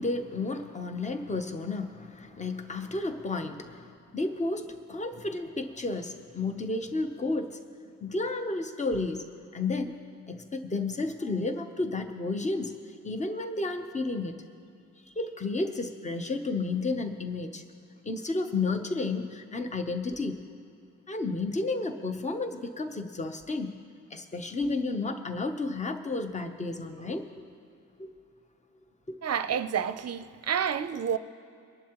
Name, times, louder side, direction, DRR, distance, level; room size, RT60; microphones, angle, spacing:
voice 1, 0.0-3.9 4.1-7.6 8.0-9.2 9.5-9.9 10.3-12.7 13.0-14.4 15.2-17.6 18.0-20.4 21.1-23.8 24.1-27.5 28.0-28.1, left 3 dB, 20° left, 0.7 m, -32 dB
voice 2, 29.2-31.2, right 8 dB, 50° right, 0.5 m, -29 dB
23.0 x 11.0 x 2.9 m
wide cardioid pair, 175°, 32 cm